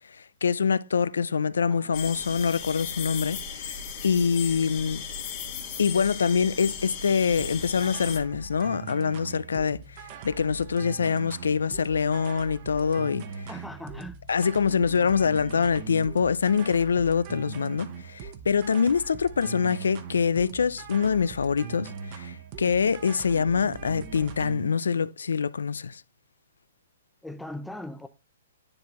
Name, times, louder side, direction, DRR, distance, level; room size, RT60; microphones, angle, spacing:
voice 1, 0.4-3.8 4.0-5.0 5.8-13.2 14.3-26.0, left 6 dB, 90° left, 0.4 m, -25 dB
sound 1, 1.9-8.2, left 7 dB, 40° left, 1.4 m, -36 dB
sound 2, 7.4-24.7, right 6 dB, 40° right, 0.8 m, -41 dB
voice 2, 13.5-14.2 27.2-28.1, left 1 dB, ahead, 0.5 m, -39 dB
9.9 x 3.8 x 2.9 m
hypercardioid pair, 145°, 0 cm